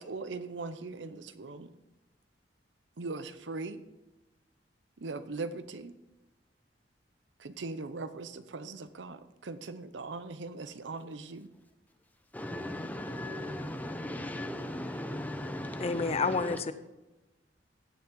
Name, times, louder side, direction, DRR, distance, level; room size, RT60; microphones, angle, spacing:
voice 1, 0.0-1.7 3.0-3.8 5.0-5.9 7.4-11.5, right 3 dB, 85° right, 12 dB, 0.7 m, -40 dB
voice 2, 12.3-16.6, left 1 dB, 10° left, 6 dB, 0.9 m, -37 dB
voice 3, 15.8-16.7, left 4 dB, 35° left, 13 dB, 0.5 m, -29 dB
16.0 x 7.2 x 3.9 m, 1.0 s
head